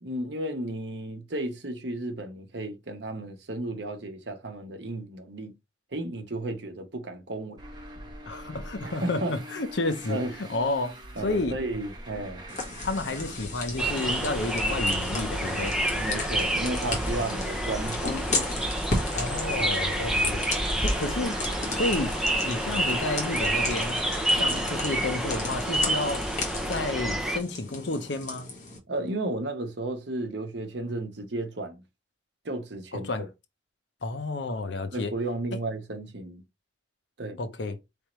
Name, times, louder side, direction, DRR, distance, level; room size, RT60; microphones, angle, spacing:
voice 1, 0.0-5.5 5.9-7.6 8.8-9.3 10.1-10.3 11.2-12.4 15.9-18.3 20.1-20.3 28.9-31.8 32.4-33.1 34.9-36.4 37.2-37.4, right 2 dB, 60° right, 1.0 m, -33 dB
Traffic noise roadway noise, 7.6-24.7, right 1 dB, 20° right, 1.1 m, -43 dB
voice 2, 8.3-11.0 11.2-11.6 12.8-15.8 19.1-20.4 20.8-21.4 21.7-22.2 22.4-24.0 24.3-26.2 26.7-28.5 32.9-33.3 34.0-35.1 37.4-37.8, left 2 dB, 65° left, 0.7 m, -31 dB
sound 1, 12.5-28.8, left 3 dB, 40° left, 1.5 m, -35 dB
sound 2, 13.8-27.4, right 1 dB, 5° right, 0.5 m, -28 dB
4.5 x 3.5 x 3.0 m
head